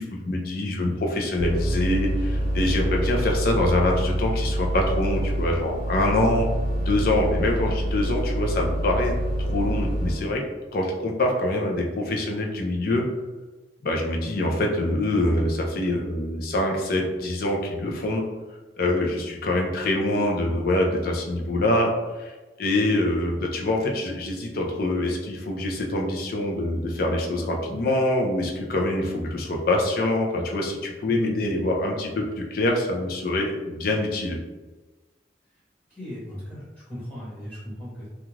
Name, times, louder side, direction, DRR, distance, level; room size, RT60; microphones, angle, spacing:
voice 1, 0.0-6.5 6.8-9.1 9.4-10.4 10.7-13.1 13.8-18.2 18.8-21.9 22.2-22.3 22.6-32.2 32.5-34.4, left 1 dB, 55° left, 0 dB, 0.5 m, -25 dB
sound 1, 1.4-10.1, equal, 90° left, 1.2 m, -26 dB
voice 2, 35.9-38.1, equal, 10° left, -10 dB, 1.0 m, -37 dB
2.4 x 2.3 x 3.1 m, 1.2 s
head